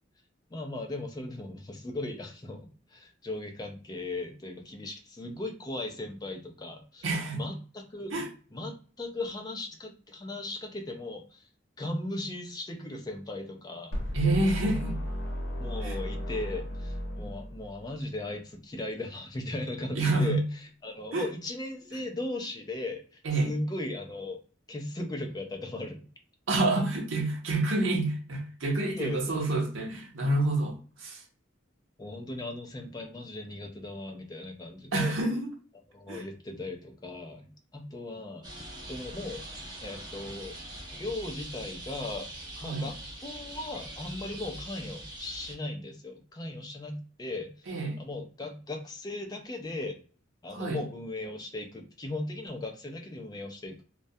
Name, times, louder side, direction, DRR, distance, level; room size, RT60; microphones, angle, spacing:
voice 1, 0.5-2.6 2.9-7.0 7.3-8.1 8.5-11.5 11.8-13.9 15.6-24.4 24.7-26.1 29.0-29.4 32.0-35.2 35.9-38.5 38.9-39.4 39.8-40.6 41.0-42.3 42.6-42.9 43.2-47.7 48.0-50.0 50.4-53.8, left 2 dB, 20° left, 0.4 m, -37 dB
voice 2, 7.0-7.4 8.1-8.3 14.1-15.0 15.8-16.0 19.9-20.4 21.1-21.3 23.2-23.5 26.5-31.2 34.9-35.5 36.1-36.2 42.6-42.8 47.7-48.0 50.5-50.8, right 2 dB, 90° right, 0.7 m, -28 dB
sound 1, 13.9-17.9, equal, 65° left, 0.8 m, -34 dB
sound 2, 38.4-45.5, right 1 dB, 20° right, 0.8 m, -43 dB
2.2 x 2.1 x 2.6 m
head